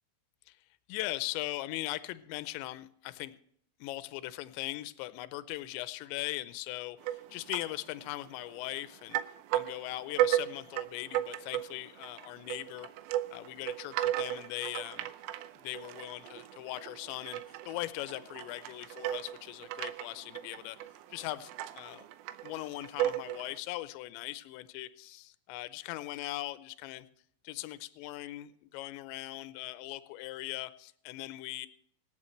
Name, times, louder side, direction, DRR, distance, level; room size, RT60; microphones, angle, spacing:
voice 1, 0.9-3.4 3.8-9.2 9.5-12.9 13.3-15.1 15.5-20.8 21.1-22.1 22.4-27.1 27.4-31.7, left 17 dB, 85° left, 13 dB, 2.6 m, -40 dB
sound 1, 7.0-7.8 8.1-8.8 9.1-23.6, right 13 dB, 85° right, 3.3 m, -35 dB
26.0 x 9.1 x 3.2 m, 0.67 s
omnidirectional pair, 5.9 m